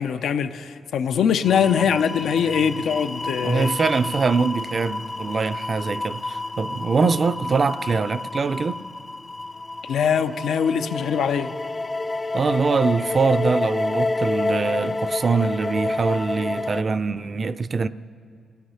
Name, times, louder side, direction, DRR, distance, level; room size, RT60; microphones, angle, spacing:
voice 1, 0.0-3.7 9.9-11.5, left 7 dB, 80° left, 0.7 m, -22 dB
sound 1, 1.4-16.8, left 2 dB, 25° left, 0.4 m, -29 dB
voice 2, 3.4-8.8 12.3-17.9, right 4 dB, 40° right, 0.5 m, -23 dB
28.0 x 16.5 x 5.7 m
cardioid pair, 115°, 0 cm